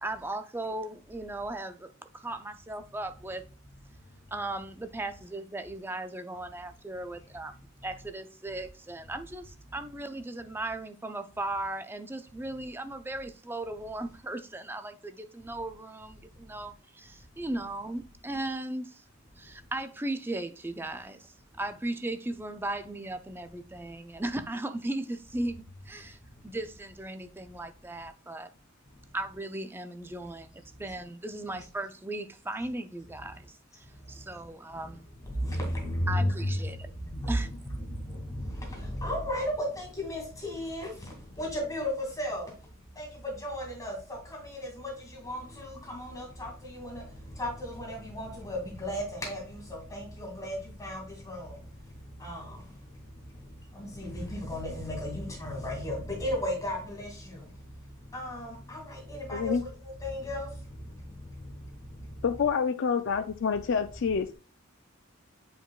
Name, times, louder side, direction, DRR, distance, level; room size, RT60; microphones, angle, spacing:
voice 1, 0.0-3.5 4.3-7.5 7.8-19.0 19.4-26.2 26.4-28.5 29.1-35.0 36.1-36.8 37.3-37.5, right 2 dB, 10° right, 0.4 m, -37 dB
voice 2, 35.2-36.3 36.6-36.7 37.0-37.5 37.8-42.5 43.0-47.0 47.3-51.6 52.2-52.6 53.7-57.5 58.1-59.5 59.8-60.5, left 1 dB, 15° left, 2.3 m, -34 dB
voice 3, 59.3-59.6 62.2-64.3, left 6 dB, 55° left, 0.4 m, -27 dB
8.9 x 5.0 x 2.3 m
head